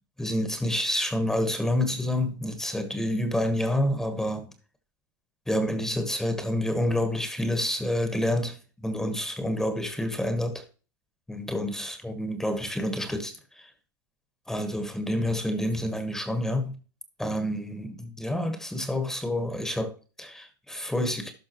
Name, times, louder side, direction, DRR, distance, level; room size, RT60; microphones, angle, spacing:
voice 1, 0.2-4.5 5.5-8.6 8.8-10.6 11.3-13.7 14.5-16.8 17.2-21.3, left 1 dB, 5° left, 1.3 m, -28 dB
12.0 x 5.5 x 3.0 m
hypercardioid pair, 120°, 12 cm